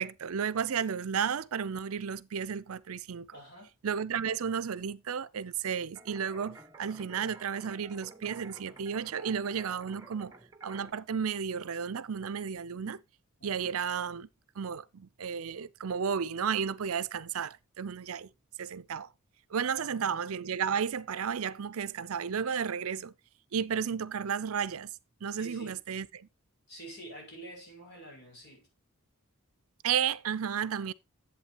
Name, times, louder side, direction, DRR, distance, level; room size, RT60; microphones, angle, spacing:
voice 1, 0.0-3.4 3.8-10.3 10.6-13.0 13.4-14.3 14.6-18.3 18.6-19.1 19.5-23.1 23.5-24.9 25.2-26.3 29.8-30.9, right 7 dB, 75° right, 0.5 m, -33 dB
voice 2, 3.3-3.7 13.4-13.7 19.7-20.3 25.4-25.8 26.7-28.7, right 1 dB, 50° left, 6.4 m, -48 dB
sound 1, 5.9-10.9, right 3 dB, 15° right, 1.2 m, -51 dB
11.0 x 8.2 x 2.9 m
head